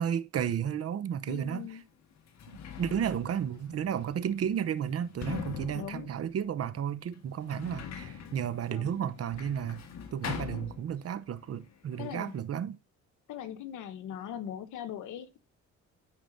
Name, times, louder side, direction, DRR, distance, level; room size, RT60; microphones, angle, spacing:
voice 1, 0.0-1.8 2.8-12.8, right 8 dB, 55° right, 0.8 m, -33 dB
voice 2, 1.3-1.8 5.7-6.1 8.7-9.0 12.0-12.3 13.3-15.4, left 9 dB, 85° left, 1.2 m, -40 dB
Sliding door, 1.5-1.6 2.2-11.3 11.6-12.4, left 7 dB, 60° left, 1.7 m, -43 dB
13.0 x 5.0 x 2.6 m
cardioid pair, 90°, 30 cm